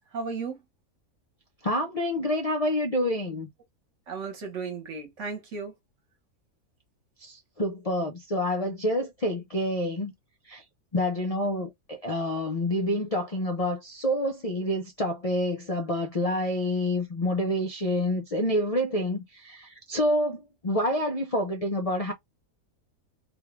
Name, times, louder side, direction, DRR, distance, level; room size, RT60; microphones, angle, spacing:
voice 1, 0.1-0.6 4.1-5.7, right 4 dB, 55° right, 1.4 m, -34 dB
voice 2, 1.6-3.5 7.2-10.1 10.5-10.6 10.9-22.1, left 1 dB, 70° left, 0.3 m, -28 dB
3.6 x 2.3 x 3.1 m
omnidirectional pair, 1.6 m